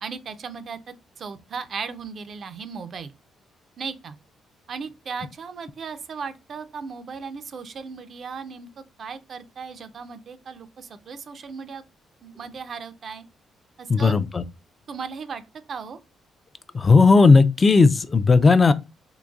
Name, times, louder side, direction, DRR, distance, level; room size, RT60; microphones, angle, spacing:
voice 1, 0.0-3.1 3.8-4.2 4.7-8.7 9.0-11.8 12.2-13.2 13.8-14.2 14.9-15.4 15.7-16.0, right 5 dB, 50° right, 0.4 m, -36 dB
voice 2, 13.9-14.4 16.7-18.7, left 4 dB, 30° left, 0.3 m, -15 dB
3.8 x 2.8 x 2.3 m
cardioid pair, 90°, 0 cm